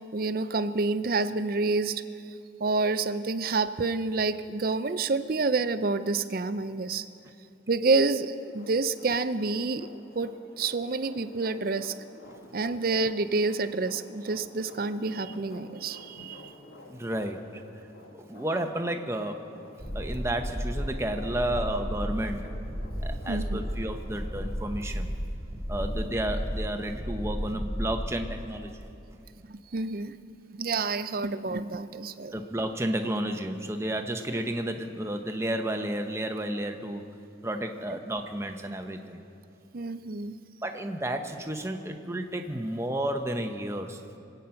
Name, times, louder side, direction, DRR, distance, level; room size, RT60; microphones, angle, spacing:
voice 1, 0.1-2.0 2.6-7.1 7.7-11.9 12.5-16.5 21.7-21.8 23.3-23.6 29.5-30.2 30.5-32.4 39.7-40.4, right 3 dB, 50° right, 12 dB, 0.5 m, -28 dB
sound 1, 8.4-24.5, left 2 dB, 90° left, 1.5 m, -50 dB
voice 2, 16.9-17.6 18.1-19.4 19.9-22.6 23.0-25.1 25.7-28.9 32.3-37.0 37.4-39.2 40.6-44.0, right 1 dB, 15° right, 5 dB, 0.9 m, -32 dB
sound 2, 19.8-28.2, equal, 25° left, 3.3 m, -33 dB
24.5 x 9.2 x 5.8 m, 2.6 s
head